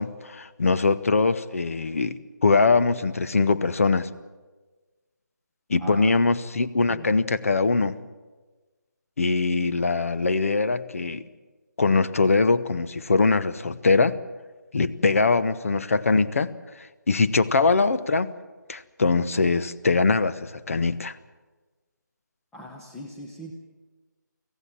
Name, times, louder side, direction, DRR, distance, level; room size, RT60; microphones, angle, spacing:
voice 1, 0.0-4.1 5.7-8.0 9.2-11.2 11.8-14.2 14.7-16.5 16.8-18.3 18.7-21.2, left 4 dB, 45° left, 14 dB, 1.0 m, -22 dB
voice 2, 5.8-6.2 6.9-7.1 22.5-23.5, equal, 5° left, -2 dB, 0.8 m, -40 dB
24.5 x 16.5 x 7.3 m, 1.3 s
figure-of-eight pair, 160°, 10 cm